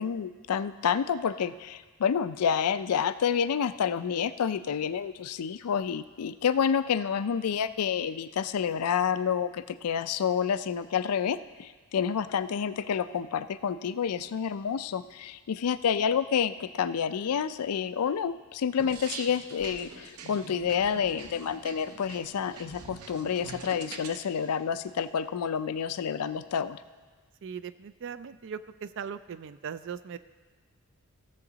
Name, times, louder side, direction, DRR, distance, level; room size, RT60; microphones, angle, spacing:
voice 1, 0.0-26.8, left 7 dB, 85° left, 13 dB, 0.4 m, -29 dB
sound 1, 18.8-24.2, right 4 dB, 80° right, 0.7 m, -44 dB
voice 2, 27.4-30.2, right 7 dB, 55° right, 14 dB, 0.4 m, -39 dB
15.5 x 7.1 x 3.9 m, 1.4 s
head